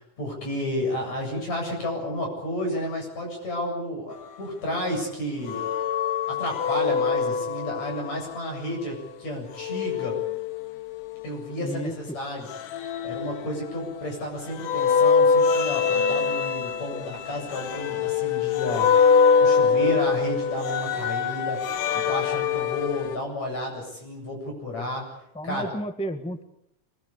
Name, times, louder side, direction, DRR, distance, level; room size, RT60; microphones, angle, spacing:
voice 1, 0.0-5.7 6.3-10.2 11.2-18.9 19.4-25.0 25.4-25.7, left 1 dB, 60° left, 1 dB, 9.2 m, -32 dB
sound 1, 5.5-8.4 9.6-11.3 12.5-14.1 14.6-23.2, left 6 dB, 90° left, 2.7 m, -24 dB
voice 2, 11.6-12.2 16.9-17.1 25.3-26.4, equal, 5° left, 8 dB, 0.5 m, -32 dB
25.0 x 21.0 x 8.5 m, 0.78 s
omnidirectional pair, 3.6 m